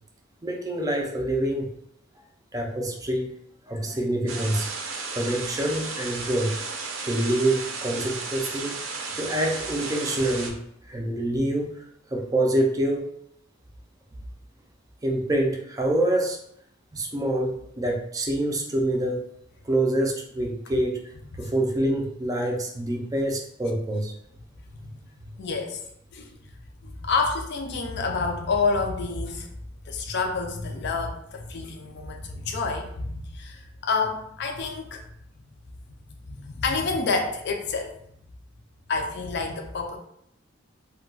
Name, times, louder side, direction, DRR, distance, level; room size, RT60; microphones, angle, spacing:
voice 1, 0.4-1.7 2.5-3.3 3.7-4.7 5.1-6.6 7.0-8.8 9.1-10.6 10.8-13.1 15.0-16.4 16.9-19.2 19.6-24.1, right 1 dB, 20° right, 2 dB, 0.4 m, -26 dB
sound 1, 4.3-10.5, right 4 dB, 80° right, 0.5 m, -34 dB
voice 2, 25.4-25.8 26.1-26.3 26.8-29.5 29.9-35.0 36.3-37.9 38.9-40.0, left 4 dB, 55° left, 3 dB, 0.4 m, -28 dB
2.2 x 2.2 x 3.8 m, 0.72 s
head